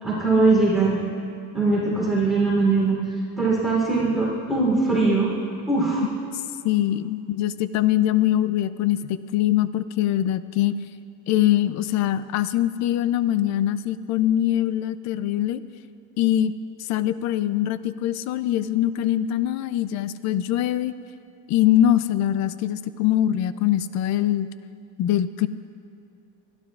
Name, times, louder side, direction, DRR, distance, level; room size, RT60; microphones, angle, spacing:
voice 1, 0.0-1.0 1.5-3.0 3.4-5.3 5.7-6.0, right 3 dB, ahead, -6 dB, 3.3 m, -21 dB
voice 2, 6.6-10.7 11.3-15.6 16.2-16.5 16.8-20.9 21.5-24.5 25.0-25.5, left 12 dB, 60° left, 15 dB, 0.5 m, -23 dB
26.0 x 11.5 x 2.4 m, 2.6 s
cardioid pair, 150°, 32 cm